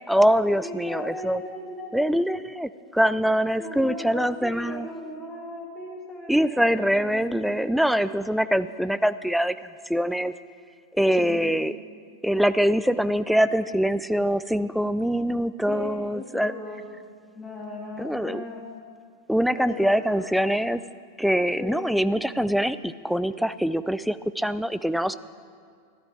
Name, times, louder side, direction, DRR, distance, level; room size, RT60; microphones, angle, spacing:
voice 1, 0.1-1.4 1.9-4.9 6.3-9.5 9.9-10.3 11.0-11.7 12.2-16.5 18.0-18.4 19.3-20.8 21.2-25.2, equal, ahead, 14 dB, 0.3 m, -23 dB
voice 2, 0.6-1.9 3.6-7.3 11.2-11.5 15.7-16.8 17.3-18.6 19.5-20.3 21.6-21.8, left 1 dB, 15° left, -2 dB, 2.5 m, -37 dB
13.5 x 11.5 x 4.6 m, 2.1 s
figure-of-eight pair, 90°, 0 cm